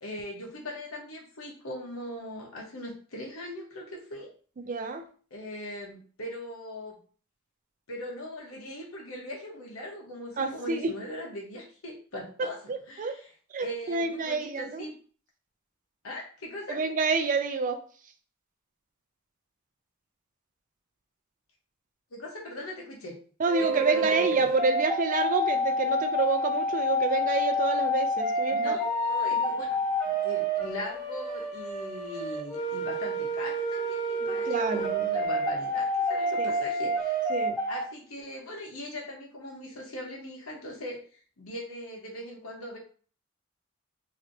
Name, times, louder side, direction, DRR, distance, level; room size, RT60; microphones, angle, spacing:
voice 1, 0.0-4.3 5.3-7.0 7.9-12.6 12.9-13.3 13.6-14.9 16.0-16.8 22.1-23.2 23.6-24.5 28.5-37.2 37.7-42.8, left 1 dB, 85° left, -1 dB, 1.1 m, -40 dB
voice 2, 4.6-5.1 10.4-10.9 12.4-13.2 13.5-14.8 16.7-17.8 23.4-28.8 34.5-35.0 36.4-36.5 37.3-37.6, right 4 dB, 40° right, 7 dB, 0.4 m, -28 dB
sound 1, 23.5-37.8, equal, ahead, 1.1 m, -28 dB
3.2 x 2.8 x 2.7 m, 0.42 s
head